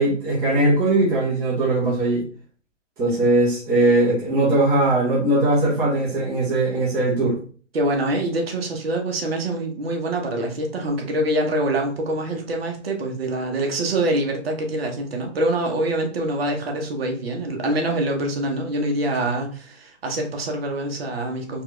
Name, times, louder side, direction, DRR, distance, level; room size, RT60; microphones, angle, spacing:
voice 1, 0.0-2.3 3.0-7.4, right 2 dB, 10° right, -8 dB, 0.8 m, -20 dB
voice 2, 7.7-21.6, right 1 dB, 50° right, 2 dB, 1.1 m, -25 dB
4.3 x 2.5 x 3.3 m, 0.41 s
hypercardioid pair, 160°, 37 cm